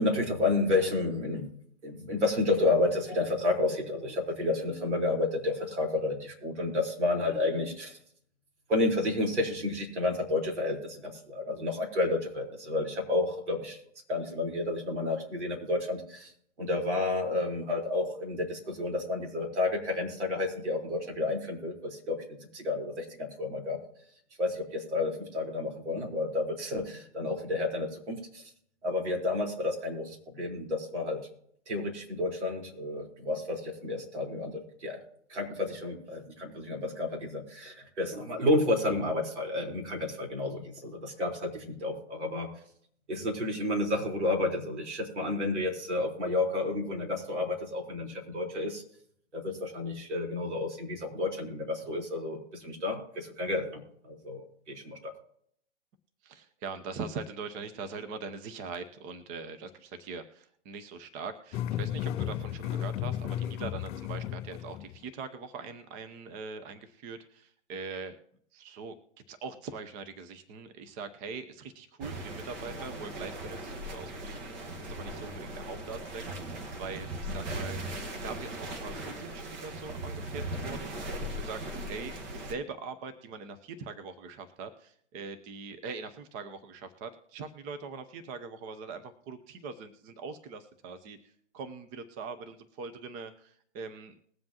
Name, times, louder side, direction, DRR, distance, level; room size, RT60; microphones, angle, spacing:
voice 1, 0.0-1.5 1.8-8.0 8.7-13.8 14.1-16.3 16.6-23.8 24.4-28.4 28.8-31.2 31.7-35.0 35.3-42.5 43.1-48.8 49.3-55.1, left 2 dB, 70° right, 1 dB, 4.2 m, -31 dB
voice 2, 56.2-68.1 68.5-68.9 69.3-77.8 78.2-91.2 91.5-94.2, right 4 dB, 20° right, 10 dB, 0.8 m, -42 dB
sound 1, 61.5-65.0, left 11 dB, 25° left, 2.5 m, -34 dB
sound 2, 72.0-82.5, right 1 dB, 40° right, 1.6 m, -38 dB
21.0 x 7.4 x 2.9 m, 0.65 s
hypercardioid pair, 130°, 36 cm